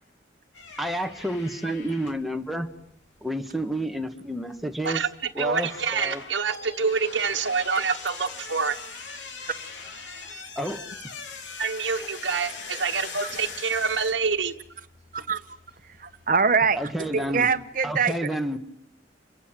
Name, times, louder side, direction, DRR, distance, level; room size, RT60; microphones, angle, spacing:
sound 1, 0.5-17.9, left 4 dB, 80° left, 3.5 m, -42 dB
voice 1, 0.8-2.7 3.2-5.0 5.4-6.2 10.6-10.8 16.8-17.5 17.8-18.6, right 1 dB, ahead, 1.6 m, -30 dB
voice 2, 5.4-8.8 11.6-14.5, right 5 dB, 75° right, 1.3 m, -26 dB
voice 3, 16.0-18.2, right 5 dB, 45° right, 1.2 m, -24 dB
29.0 x 23.5 x 7.6 m
head